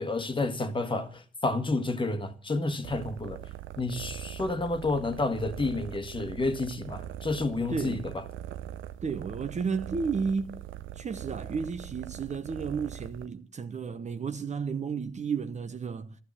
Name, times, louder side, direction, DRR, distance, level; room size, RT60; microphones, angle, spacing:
voice 1, 0.0-3.4 3.8-8.2, left 2 dB, 25° left, 1.5 m, -30 dB
sound 1, 2.8-13.3, right 12 dB, 75° right, 0.7 m, -41 dB
voice 2, 7.7-8.0 9.0-10.7 11.0-16.2, right 5 dB, 35° right, 0.9 m, -32 dB
12.5 x 10.5 x 7.3 m
cardioid pair, 90°, 20 cm